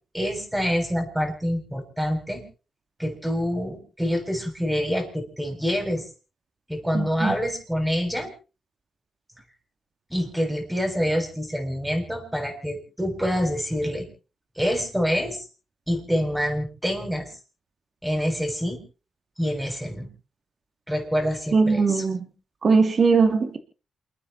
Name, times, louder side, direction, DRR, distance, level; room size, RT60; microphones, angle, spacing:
voice 1, 0.1-2.4 3.0-6.0 6.7-8.3 10.1-14.1 14.6-15.4 15.9-17.3 18.0-18.8 19.4-20.1 20.9-22.0, equal, 5° right, 3 dB, 7.7 m, -26 dB
voice 2, 6.9-7.3 21.5-22.3 22.6-23.6, right 4 dB, 45° right, 6 dB, 2.9 m, -20 dB
29.0 x 10.0 x 4.4 m, 0.37 s
cardioid pair, 85°, 0 cm